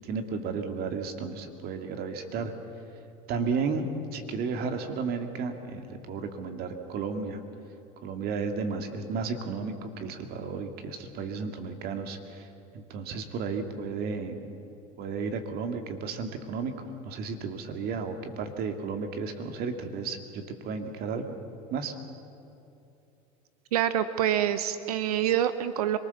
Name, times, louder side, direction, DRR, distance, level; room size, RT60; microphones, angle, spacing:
voice 1, 0.0-2.5 3.3-7.4 8.0-12.5 12.7-14.5 15.0-16.7 17.0-21.2 21.7-21.9, right 5 dB, 55° right, 6 dB, 2.4 m, -33 dB
voice 2, 23.7-26.0, right 11 dB, 90° right, 12 dB, 0.9 m, -26 dB
25.5 x 19.5 x 7.1 m, 2.8 s
supercardioid pair, 95°, 19 cm